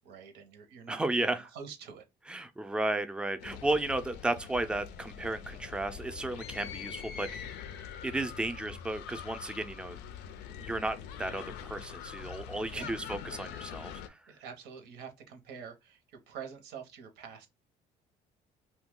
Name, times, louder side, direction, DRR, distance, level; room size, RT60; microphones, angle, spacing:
voice 1, 0.0-2.0 12.7-13.0 14.3-17.5, right 7 dB, 85° right, 0.8 m, -47 dB
voice 2, 0.9-1.5 2.3-7.5 8.0-10.0 10.5-14.2, right 2 dB, 5° right, 0.4 m, -34 dB
sound 1, 3.4-14.1, left 8 dB, 90° left, 0.4 m, -44 dB
2.8 x 2.2 x 3.6 m
cardioid pair, 110°, 17 cm